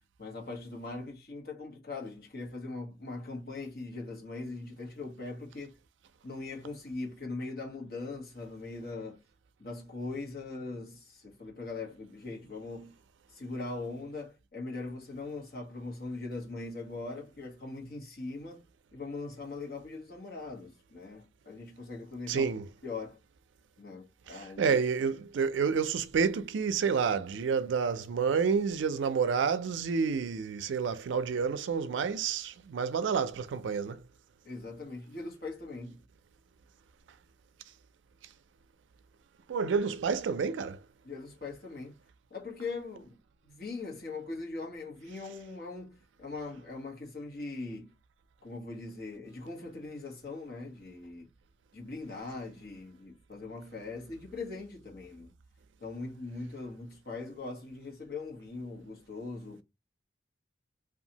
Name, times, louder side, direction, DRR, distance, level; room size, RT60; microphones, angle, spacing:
voice 1, 0.2-5.7 6.2-9.2 9.6-12.9 13.3-18.6 18.9-22.5 22.8-23.2 23.8-24.8 34.4-36.0 41.0-41.9 42.3-43.1 43.4-47.9 48.4-51.3 51.7-55.3 55.8-59.6, left 3 dB, 55° left, 0.9 m, -41 dB
voice 2, 22.3-22.6 24.3-34.0 39.5-40.8, right 6 dB, 85° right, 0.4 m, -29 dB
2.7 x 2.3 x 2.7 m
head